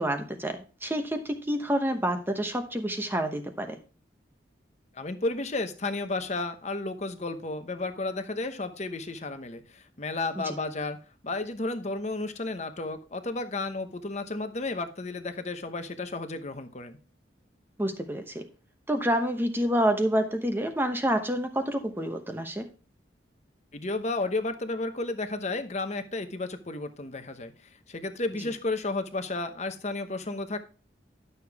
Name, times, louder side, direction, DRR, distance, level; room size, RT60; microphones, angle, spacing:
voice 1, 0.0-3.8 10.5-10.6 17.8-18.5 18.9-22.7, equal, 10° right, 6 dB, 0.9 m, -28 dB
voice 2, 4.9-11.0 11.2-17.0 23.7-30.6, left 2 dB, 35° left, 8 dB, 0.9 m, -32 dB
11.5 x 6.7 x 3.5 m, 0.36 s
head